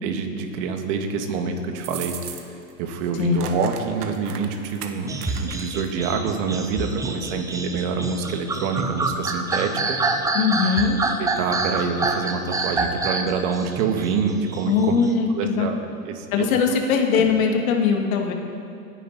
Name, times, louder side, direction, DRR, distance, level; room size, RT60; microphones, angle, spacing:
voice 1, 0.0-2.4 2.8-10.0 11.2-15.0 15.4-16.5 17.1-17.3, right 5 dB, 50° right, 4 dB, 2.2 m, -26 dB
sound 1, 1.8-2.7 3.0-5.9, right 8 dB, 75° right, 1.6 m, -37 dB
sound 2, 5.1-15.1, right 3 dB, 5° right, 0.7 m, -27 dB
voice 2, 10.3-11.0 14.7-15.7 16.3-18.3, left 6 dB, 60° left, 2 dB, 2.6 m, -20 dB
29.0 x 10.0 x 4.4 m, 2.4 s
hypercardioid pair, 120°, 47 cm